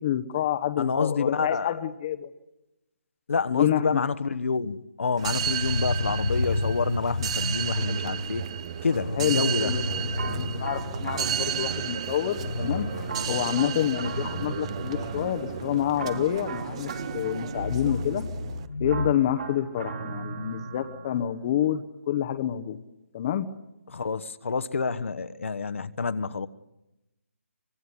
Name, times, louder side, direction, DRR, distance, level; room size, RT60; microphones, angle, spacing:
voice 1, 0.0-2.3 3.5-4.0 9.2-10.0 10.3-12.9 13.3-18.2 18.8-22.8 23.1-23.5, left 11 dB, 25° left, 1.0 m, -28 dB
voice 2, 0.8-1.8 3.3-8.5 8.8-9.7 23.9-26.5, left 5 dB, 65° left, 1.2 m, -28 dB
sound 1, 5.2-11.7 12.0-12.1 12.4-17.0 17.5-19.1, left 2 dB, 85° left, 3.5 m, -32 dB
sound 2, 5.2-18.7, right 9 dB, 25° right, 0.8 m, -34 dB
sound 3, 10.1-12.2 13.1-15.4 16.0-18.1 18.9-21.3, right 4 dB, 50° right, 3.7 m, -37 dB
25.0 x 21.0 x 9.8 m
hypercardioid pair, 170°, 8 cm